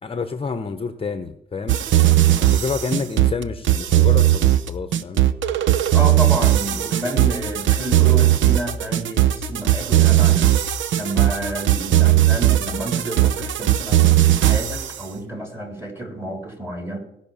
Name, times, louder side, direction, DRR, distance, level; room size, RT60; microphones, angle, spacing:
voice 1, 0.0-1.8 2.3-5.2, left 5 dB, 30° left, 9 dB, 1.0 m, -29 dB
sound 1, 1.7-14.9, right 13 dB, 75° right, 0.8 m, -17 dB
voice 2, 5.9-10.5 10.9-17.0, right 1 dB, 10° right, 2 dB, 3.7 m, -30 dB
17.5 x 5.9 x 7.2 m, 0.86 s
cardioid pair, 90°, 20 cm